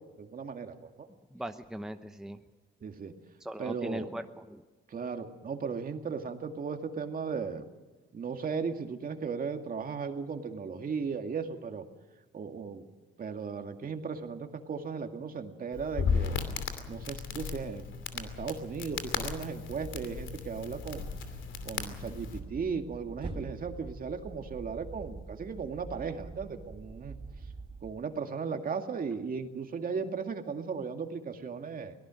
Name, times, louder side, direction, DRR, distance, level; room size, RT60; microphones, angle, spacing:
voice 1, 0.2-1.1 2.8-3.1 3.6-4.1 4.9-7.6 8.1-11.8 12.3-12.8 13.2-16.4 16.9-17.9 18.1-21.1 21.7-27.2 27.8-31.9, right 5 dB, 45° right, 5 dB, 2.2 m, -36 dB
voice 2, 1.3-2.4 3.4-4.6, right 1 dB, 5° right, 7 dB, 0.9 m, -39 dB
Crackle, 15.7-22.4, left 6 dB, 75° left, 2.7 m, -35 dB
sound 1, 19.7-27.9, right 3 dB, 25° right, 4.1 m, -45 dB
23.0 x 18.0 x 6.4 m, 1.2 s
cardioid pair, 90°, 20 cm